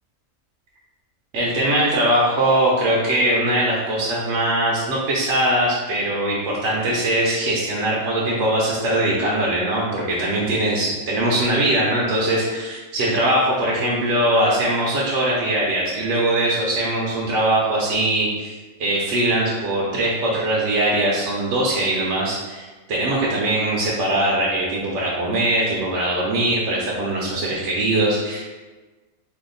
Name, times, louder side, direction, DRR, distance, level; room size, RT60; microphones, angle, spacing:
voice 1, 1.3-18.5 18.8-28.4, right 1 dB, 70° right, -5 dB, 0.8 m, -21 dB
2.7 x 2.3 x 3.7 m, 1.3 s
omnidirectional pair, 1.4 m